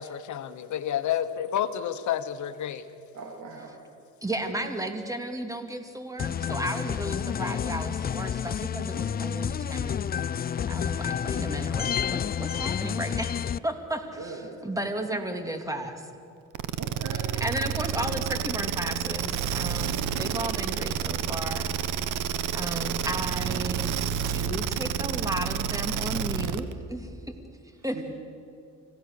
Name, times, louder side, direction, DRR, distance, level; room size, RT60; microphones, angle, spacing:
voice 1, 0.0-2.9, left 10 dB, 70° left, 11 dB, 1.2 m, -30 dB
voice 2, 3.1-3.7 4.6-4.7 14.2-14.6 16.8-17.4 27.9-28.0, right 3 dB, 65° right, 1 dB, 3.0 m, -40 dB
voice 3, 4.2-10.0 10.7-16.0 17.1-21.7 22.5-24.0 24.3-27.1 27.8-28.0, right 1 dB, 10° right, 6 dB, 2.4 m, -34 dB
sound 1, 6.2-13.6, left 8 dB, 30° left, 0.4 m, -30 dB
sound 2, 16.5-26.7, right 8 dB, 85° right, 1.0 m, -29 dB
25.5 x 16.5 x 6.7 m, 2.7 s
cardioid pair, 90°, 30 cm